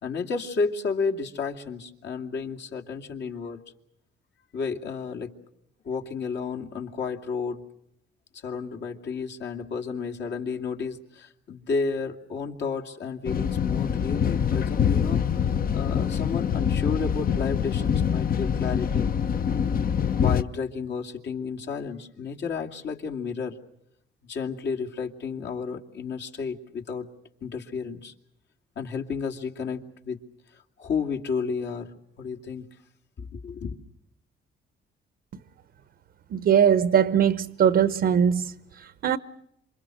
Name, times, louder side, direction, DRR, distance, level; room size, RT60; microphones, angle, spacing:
voice 1, 0.0-3.6 4.5-5.3 5.8-7.6 8.3-19.1 20.1-23.6 24.2-27.1 27.4-28.1 28.8-30.2 30.5-32.7 33.2-33.8, left 5 dB, 65° left, 2.5 m, -32 dB
sound 1, 13.2-20.4, left 8 dB, 45° left, 0.9 m, -25 dB
voice 2, 36.3-39.2, right 8 dB, 60° right, 0.9 m, -21 dB
27.5 x 25.0 x 6.4 m
cardioid pair, 90°, 20 cm